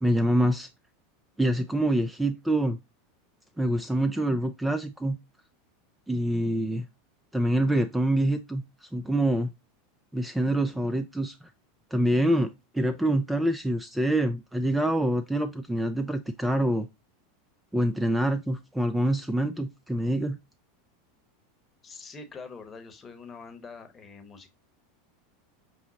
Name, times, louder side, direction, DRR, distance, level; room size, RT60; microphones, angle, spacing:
voice 1, 0.0-0.7 1.4-2.8 3.6-5.2 6.1-6.9 7.3-9.5 10.1-11.5 11.9-16.9 17.7-20.4, right 1 dB, 5° right, 0.3 m, -26 dB
voice 2, 21.8-24.5, left 4 dB, 20° left, 0.9 m, -44 dB
5.9 x 2.0 x 3.9 m
hypercardioid pair, 100°, 0 cm